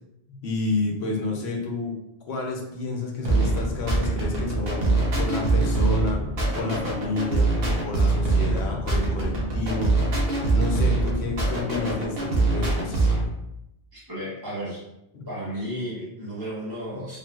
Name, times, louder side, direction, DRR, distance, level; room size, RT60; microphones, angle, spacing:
voice 1, 0.3-2.0 2.3-6.2 6.6-10.1 10.5-13.1 15.1-15.3 16.9-17.1, left 3 dB, 75° left, 1 dB, 0.9 m, -30 dB
sound 1, 3.2-13.3, right 2 dB, 65° right, 0.9 m, -24 dB
voice 2, 13.9-14.8 15.3-17.2, equal, 25° right, -10 dB, 0.8 m, -33 dB
3.6 x 2.5 x 2.3 m, 0.84 s
omnidirectional pair, 1.1 m